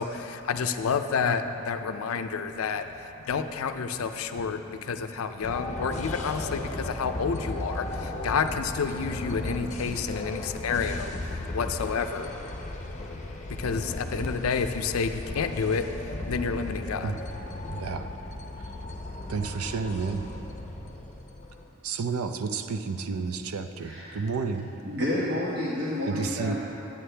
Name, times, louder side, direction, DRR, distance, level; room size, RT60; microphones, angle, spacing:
voice 1, 0.0-12.3 13.6-15.8 16.3-17.1, left 5 dB, 75° left, 8 dB, 0.4 m, -29 dB
sound 1, 5.4-21.7, left 2 dB, 35° left, 0.7 m, -36 dB
voice 2, 17.7-18.1 19.3-20.2 21.8-24.7 26.0-26.6, right 5 dB, 90° right, 8 dB, 0.5 m, -31 dB
voice 3, 23.8-24.2 24.8-26.6, left 1 dB, 50° right, -8 dB, 1.2 m, -30 dB
11.0 x 8.7 x 3.3 m, 2.9 s
head